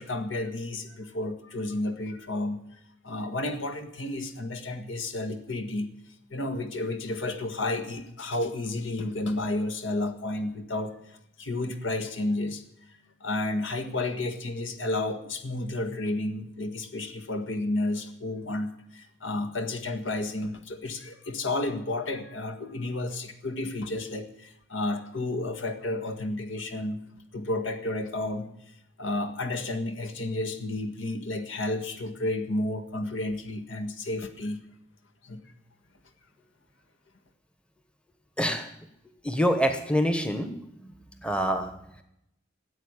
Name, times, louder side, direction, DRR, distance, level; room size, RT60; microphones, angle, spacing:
voice 1, 0.0-5.9 6.3-12.6 13.2-27.0 27.3-28.5 29.0-34.6 35.2-35.4, left 2 dB, 70° left, 7 dB, 1.8 m, -31 dB
voice 2, 38.4-38.7 39.2-40.5 40.8-42.0, equal, 5° left, 7 dB, 1.1 m, -26 dB
15.5 x 8.1 x 9.8 m, 0.78 s
head